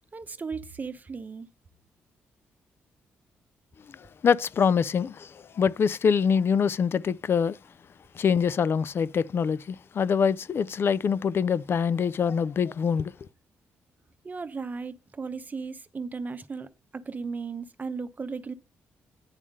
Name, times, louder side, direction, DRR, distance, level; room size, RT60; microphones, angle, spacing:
voice 1, 0.1-1.5 14.2-18.5, right 4 dB, 35° right, 0.9 m, -36 dB
voice 2, 3.9-7.6 8.1-13.1, left 6 dB, 50° left, 0.4 m, -25 dB
9.8 x 3.6 x 6.4 m
supercardioid pair, 60°, 5 cm